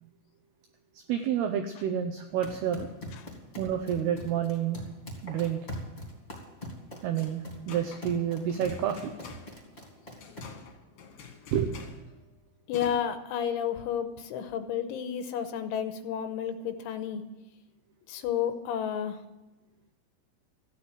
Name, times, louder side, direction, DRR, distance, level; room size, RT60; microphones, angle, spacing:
voice 1, 1.1-2.9 3.6-4.8 5.2-5.7 7.0-9.1 11.5-11.8, right 9 dB, 90° right, 6 dB, 2.2 m, -29 dB
sound 1, 2.3-10.7, left 1 dB, 15° left, 2.3 m, -43 dB
sound 2, 7.1-13.0, left 6 dB, 55° left, 2.4 m, -48 dB
voice 2, 12.7-17.3 18.1-19.2, left 9 dB, 80° left, 9 dB, 3.1 m, -31 dB
14.5 x 10.0 x 8.0 m, 1.0 s
omnidirectional pair, 5.7 m